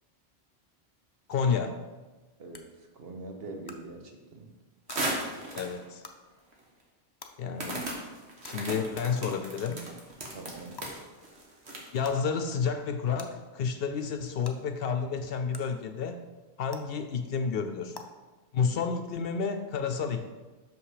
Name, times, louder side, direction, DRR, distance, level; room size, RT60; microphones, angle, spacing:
voice 1, 1.3-1.8 5.6-6.0 7.4-7.8 8.4-9.8 11.9-16.2 16.6-18.0 18.5-20.2, left 6 dB, 70° left, 7 dB, 0.7 m, -30 dB
sound 1, 1.3-1.4 2.5-2.6 3.6-3.7 4.8-5.0 6.0-6.1 7.2-7.3 8.4-8.5 9.6-9.8 10.8-10.9 12.0-12.2 13.2-13.3 14.4-14.5 15.5-15.6 16.7-16.8 17.9-18.0, left 4 dB, 30° left, 0.5 m, -44 dB
voice 2, 3.0-4.5 10.3-10.8, right 2 dB, 65° right, 3 dB, 1.2 m, -43 dB
sound 2, 4.9-5.8 6.5-6.6 7.6-12.1, right 1 dB, 85° right, 1.7 m, -36 dB
6.4 x 5.6 x 4.9 m, 1.2 s
omnidirectional pair, 1.1 m